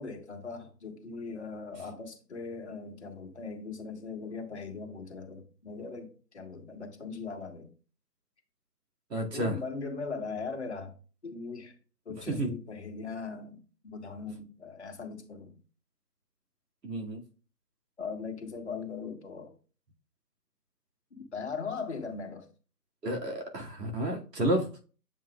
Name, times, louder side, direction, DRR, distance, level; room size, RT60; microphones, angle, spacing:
voice 1, 0.0-7.7 9.3-10.9 11.2-11.7 12.0-15.6 18.0-19.5 21.3-22.5, left 4 dB, 40° left, 1.4 m, -39 dB
voice 2, 9.1-9.5 12.4-12.5 16.8-17.2 23.0-24.8, right 1 dB, 75° right, 2.3 m, -31 dB
7.3 x 5.5 x 2.3 m
hypercardioid pair, 170°, 49 cm